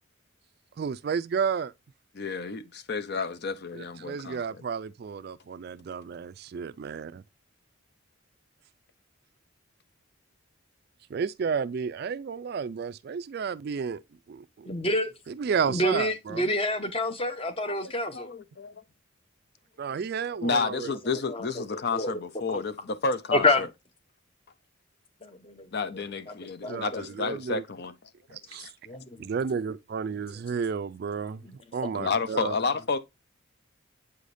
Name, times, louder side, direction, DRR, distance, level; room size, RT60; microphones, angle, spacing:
voice 1, 0.8-1.7 3.7-7.2 11.1-14.0 14.3-14.7 15.3-16.4 19.8-20.9 26.7-27.6 28.5-28.7 29.2-31.4 31.7-32.6, right 6 dB, 50° right, 0.3 m, -32 dB
voice 2, 2.1-4.4 17.6-18.8 20.4-23.7 25.7-27.9 28.3-28.4 31.9-33.0, left 4 dB, 50° left, 0.6 m, -31 dB
voice 3, 14.7-15.1 15.7-18.3 20.9-21.0 21.3-22.1 22.5-22.6 23.3-23.6 25.2-25.7 25.9-26.3 26.6-27.0 28.9-29.3 30.3-30.4 31.4-31.5, left 1 dB, 25° left, 0.8 m, -28 dB
8.2 x 4.9 x 2.6 m
head